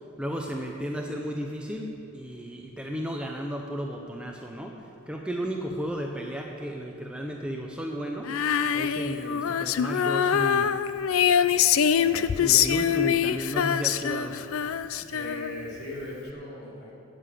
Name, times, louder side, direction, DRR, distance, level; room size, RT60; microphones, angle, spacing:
voice 1, 0.2-8.3 8.7-10.7 12.4-14.4, equal, 5° right, 1 dB, 0.6 m, -33 dB
Female singing, 8.2-15.7, left 8 dB, 80° left, 0.4 m, -24 dB
voice 2, 11.9-12.6 15.1-16.9, left 1 dB, 50° left, -5 dB, 2.9 m, -40 dB
9.6 x 7.8 x 8.4 m, 2.7 s
head